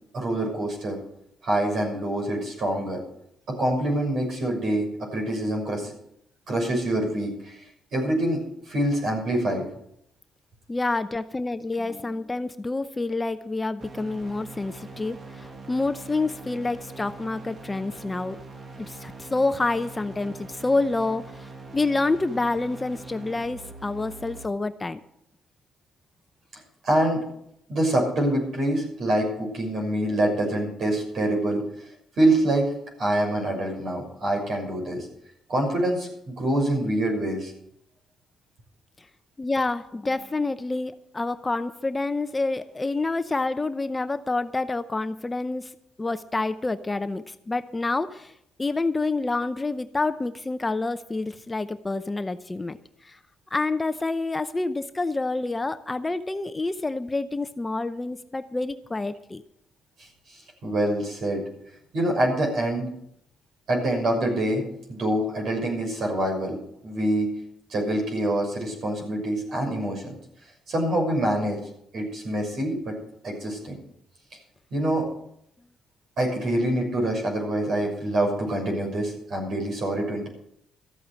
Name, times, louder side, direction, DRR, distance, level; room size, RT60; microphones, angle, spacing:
voice 1, 0.1-1.0 1.4-3.0 3.5-5.9 6.5-7.6 7.9-8.4 8.7-9.7 26.5-27.2 27.7-31.9 32.2-32.7 33.0-35.1 35.5-37.5 60.3-61.4 61.9-62.9 63.7-64.6 64.9-66.6 66.8-67.3 67.7-70.1 70.7-71.6 71.9-72.9 73.2-73.8 74.7-75.1 76.2-80.3, right 1 dB, 60° right, 1 dB, 6.3 m, -25 dB
voice 2, 10.7-18.4 18.8-25.0 39.4-45.7 46.0-48.3 48.6-52.8 53.0-53.2 53.5-59.4, left 3 dB, 20° left, 11 dB, 0.7 m, -28 dB
sound 1, 13.8-24.5, right 3 dB, 40° right, 1.9 m, -43 dB
13.5 x 8.5 x 7.8 m, 0.75 s
cardioid pair, 90°, 0 cm